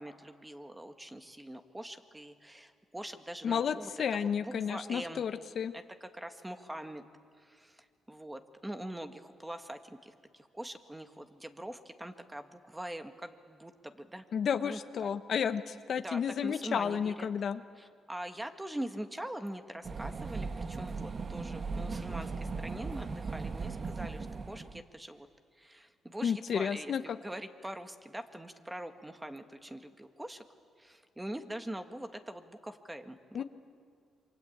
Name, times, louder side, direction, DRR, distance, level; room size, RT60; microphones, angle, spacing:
voice 1, 0.0-5.2 5.7-7.0 7.4-14.2 14.6-15.1 16.0-17.3 17.8-25.3 25.6-30.4 30.8-33.4, right 1 dB, 10° right, 7 dB, 1.8 m, -43 dB
voice 2, 3.4-5.7 14.3-17.6 26.2-27.2 33.3-33.4, left 7 dB, 55° left, 10 dB, 1.0 m, -32 dB
sound 1, 19.8-24.8, right 4 dB, 40° right, 1.2 m, -38 dB
27.0 x 25.0 x 8.7 m, 2.2 s
cardioid pair, 90°, 0 cm